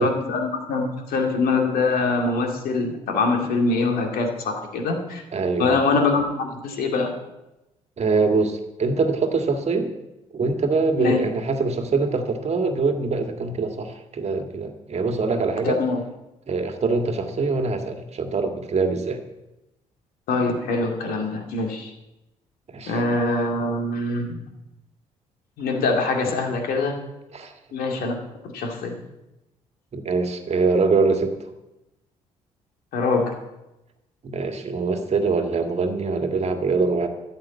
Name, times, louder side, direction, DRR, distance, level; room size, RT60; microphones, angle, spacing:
voice 1, 0.0-5.2 5.6-7.1 11.0-11.2 15.6-16.0 20.3-21.9 22.9-24.4 25.6-27.0 27.7-28.1 28.5-28.9 32.9-33.4, left 3 dB, 60° left, 3 dB, 2.3 m, -23 dB
voice 2, 5.3-5.8 8.0-9.9 10.3-15.8 16.5-19.2 22.7-23.0 27.3-27.5 29.9-31.3 34.2-37.1, right 4 dB, 40° right, 5 dB, 1.9 m, -23 dB
13.5 x 6.8 x 8.2 m, 0.96 s
figure-of-eight pair, 45°, 17 cm